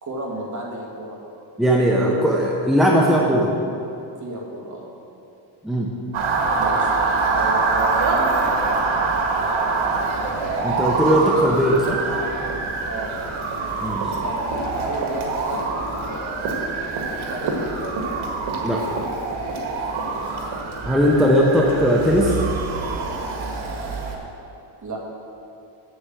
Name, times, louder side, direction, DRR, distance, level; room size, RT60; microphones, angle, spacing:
voice 1, 0.0-1.2 4.2-4.9 6.5-6.9 7.3-9.1 9.3-10.1 12.8-13.4 14.2-16.7 17.2-17.6 20.0-20.4 24.8-25.0, right 1 dB, 40° right, -2 dB, 2.2 m, -33 dB
voice 2, 1.6-3.5 5.6-5.9 10.6-12.0 13.8-14.1 18.6-18.8 20.8-22.4, equal, ahead, -2 dB, 0.9 m, -18 dB
Motor vehicle (road) / Siren, 6.1-24.2, right 4 dB, 85° right, 1.7 m, -25 dB
8.1 x 7.1 x 7.8 m, 2.7 s
cardioid pair, 125°, 47 cm